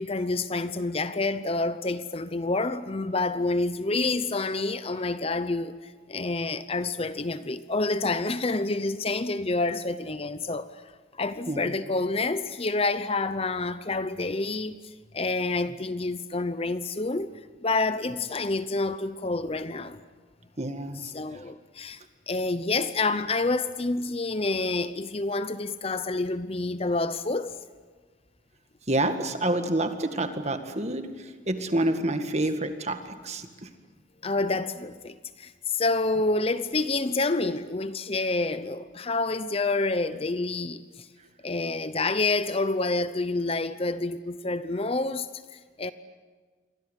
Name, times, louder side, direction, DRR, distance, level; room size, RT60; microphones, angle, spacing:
voice 1, 0.0-10.7 11.2-14.8 15.1-17.3 17.6-20.0 21.1-22.0 22.3-27.6 34.2-41.1 41.4-45.9, left 3 dB, 30° left, 0.7 m, -28 dB
voice 2, 20.6-21.1 28.9-33.7, right 1 dB, 35° right, 1.9 m, -28 dB
28.5 x 23.5 x 8.2 m
head